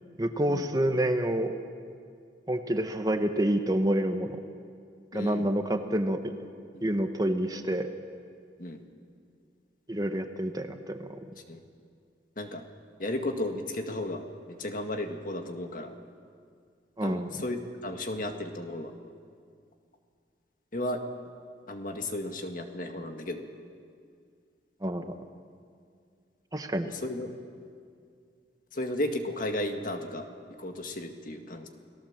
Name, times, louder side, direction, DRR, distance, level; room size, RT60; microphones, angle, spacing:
voice 1, 0.2-1.5 2.5-4.4 5.1-6.3 6.8-7.9 9.9-11.2 17.0-17.4 24.8-25.1 26.5-26.9, right 1 dB, 20° right, 7 dB, 1.1 m, -28 dB
voice 2, 5.1-5.5 6.7-6.9 8.6-8.8 11.5-11.6 12.4-12.6 13.0-14.2 14.5-15.9 17.0-18.9 20.7-21.0 21.7-23.5 27.0-27.3 28.7-30.3 30.6-31.7, left 1 dB, 50° left, 5 dB, 1.9 m, -34 dB
29.5 x 18.5 x 7.4 m, 2.2 s
head